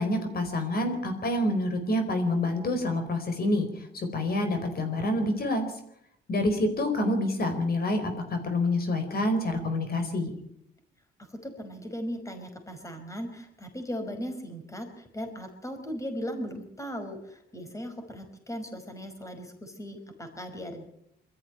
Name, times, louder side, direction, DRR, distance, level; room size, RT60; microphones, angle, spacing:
voice 1, 0.0-5.7 6.3-10.3, left 1 dB, 50° left, 7 dB, 4.6 m, -27 dB
voice 2, 11.2-20.8, equal, 15° left, 7 dB, 5.1 m, -38 dB
23.0 x 14.0 x 9.2 m, 0.74 s
cardioid pair, 90°, 20 cm